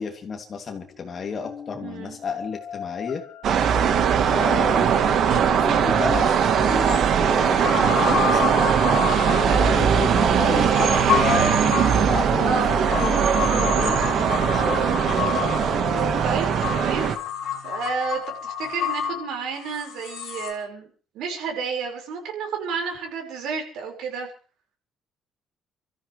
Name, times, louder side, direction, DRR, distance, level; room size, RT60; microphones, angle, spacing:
voice 1, 0.0-3.2 4.3-8.7 9.5-12.6 12.9-15.7, left 5 dB, 35° left, 3 dB, 2.8 m, -32 dB
sound 1, 0.7-16.2, left 8 dB, 55° left, 3.7 m, -37 dB
voice 2, 1.8-2.2 3.7-3.9 9.4-9.7 12.4-13.0 16.2-17.1 17.6-20.9 21.1-24.3, right 5 dB, 85° right, 2 dB, 5.3 m, -31 dB
sound 2, 3.4-17.2, right 8 dB, 55° right, 1.5 m, -20 dB
sound 3, 6.0-6.1 6.6-20.5, left 8 dB, 70° left, 3.2 m, -30 dB
29.0 x 14.0 x 3.4 m, 0.38 s
cardioid pair, 160°, 0 cm